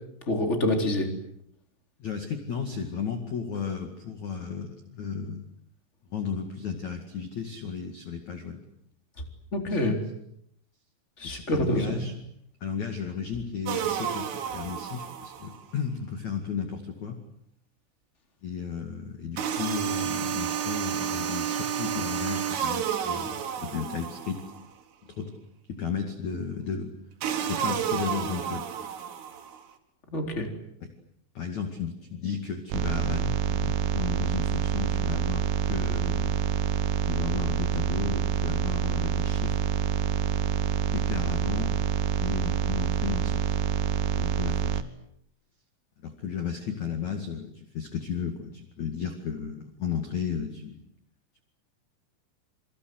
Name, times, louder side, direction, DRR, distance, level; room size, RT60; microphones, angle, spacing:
voice 1, 0.3-1.1 9.5-10.0 11.2-12.0 30.1-30.5, left 1 dB, 15° left, 4 dB, 3.5 m, -26 dB
voice 2, 2.0-5.4 6.1-8.6 9.6-9.8 11.2-12.2 12.6-17.2 18.4-24.4 25.2-25.3 25.7-26.9 27.5-28.7 30.8-30.9 31.3-36.3 37.1-39.6 40.9-41.7 42.2-43.6 44.2-44.8 46.0-50.8, left 6 dB, 45° left, 6 dB, 2.8 m, -34 dB
sound 1, 13.7-15.6 19.4-24.6 27.2-29.6, right 8 dB, 90° right, 4.8 m, -31 dB
sound 2, 32.7-44.8, right 8 dB, 70° right, 3.3 m, -27 dB
28.0 x 25.0 x 8.0 m, 0.73 s
omnidirectional pair, 5.6 m